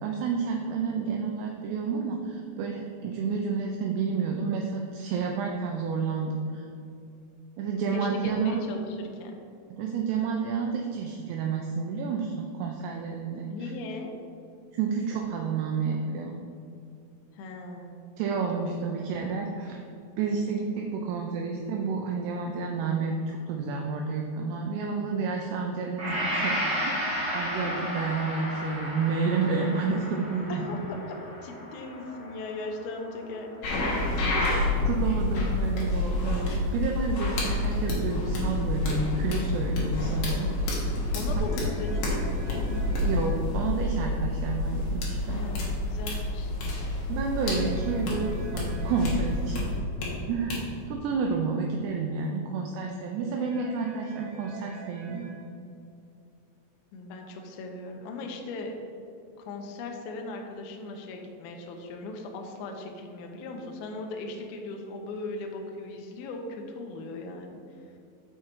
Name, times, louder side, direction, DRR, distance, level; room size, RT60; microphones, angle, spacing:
voice 1, 0.0-6.7 7.6-8.6 9.7-13.7 14.7-16.4 18.2-19.8 20.2-26.5 26.8-26.9 27.3-30.6 34.3-41.0 43.0-45.4 47.1-49.7 50.3-55.4, right 5 dB, 85° right, 1 dB, 2.3 m, -30 dB
voice 2, 7.9-9.4 13.5-14.1 17.3-18.0 18.5-19.0 27.6-27.7 30.5-33.8 41.1-42.6 45.3-46.5 56.9-58.7 59.4-67.8, left 2 dB, 85° left, 2 dB, 2.1 m, -38 dB
Gong, 26.0-34.0, equal, 50° right, 2.0 m, -34 dB
sound 1, 33.6-50.1 50.5-50.6, left 2 dB, 65° left, 2.1 m, -28 dB
telephone ringing, 41.5-43.3 47.5-49.3 53.5-55.3, right 4 dB, 70° right, 2.8 m, -47 dB
6.3 x 5.6 x 4.5 m, 2.6 s
omnidirectional pair, 5.3 m